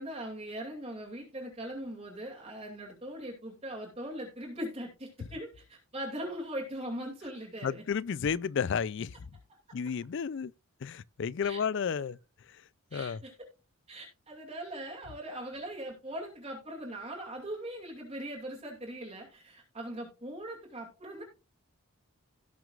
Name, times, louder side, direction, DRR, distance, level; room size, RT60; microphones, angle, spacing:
voice 1, 0.0-7.8 11.4-11.6 12.9-13.3 13.9-21.2, right 1 dB, 30° right, 2.5 m, -40 dB
voice 2, 7.6-9.3 9.7-10.5 10.8-13.2, left 6 dB, 55° left, 0.3 m, -33 dB
17.0 x 6.2 x 2.4 m
head